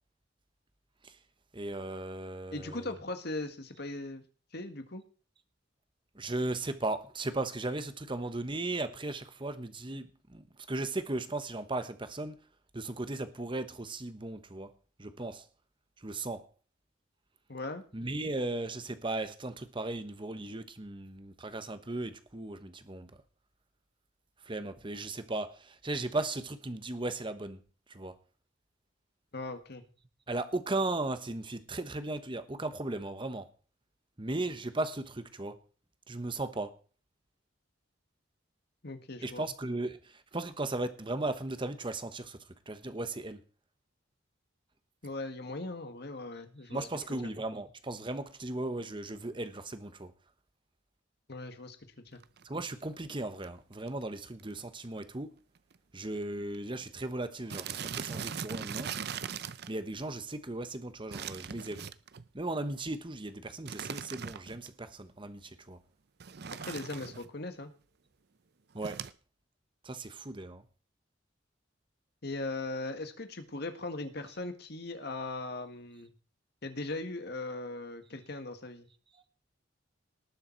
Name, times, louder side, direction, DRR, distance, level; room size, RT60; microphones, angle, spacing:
voice 1, 1.5-2.9 6.1-12.4 12.7-14.7 15.0-15.4 16.0-16.5 17.9-23.1 24.4-27.6 27.9-28.2 30.3-33.5 34.2-35.6 36.1-36.7 39.2-42.4 42.7-43.4 46.7-50.1 52.4-55.3 55.9-58.9 59.7-61.9 62.3-65.8 68.7-69.0 69.8-70.6, right 2 dB, 25° right, 1.1 m, -36 dB
voice 2, 2.5-4.2 4.5-5.0 17.5-17.8 29.3-29.8 38.8-39.5 45.0-46.9 51.3-52.2 66.6-67.7 72.2-76.1 76.6-78.9, left 2 dB, 55° left, 1.8 m, -39 dB
sound 1, 52.2-52.4 53.1-53.2 53.4-53.5 53.7-54.0 54.4-54.5 54.8-54.9 55.7-55.8 56.0-56.2 56.5-56.6 57.5-59.7 61.1-62.3 63.7-64.7 66.2-67.3 68.8-69.1, right 7 dB, 55° right, 0.6 m, -40 dB
19.0 x 6.9 x 4.6 m
head